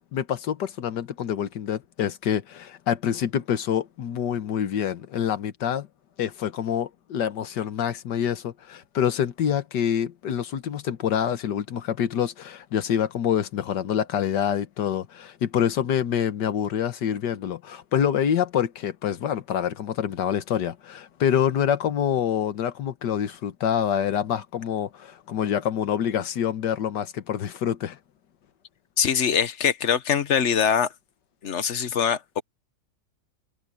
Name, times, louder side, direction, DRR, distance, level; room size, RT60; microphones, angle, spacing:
voice 1, 0.1-5.9 6.2-28.0, left 9 dB, 65° left, 1.7 m, -26 dB
voice 2, 29.0-30.9 31.4-32.4, left 7 dB, 45° left, 1.1 m, -23 dB
omnidirectional pair, 2.0 m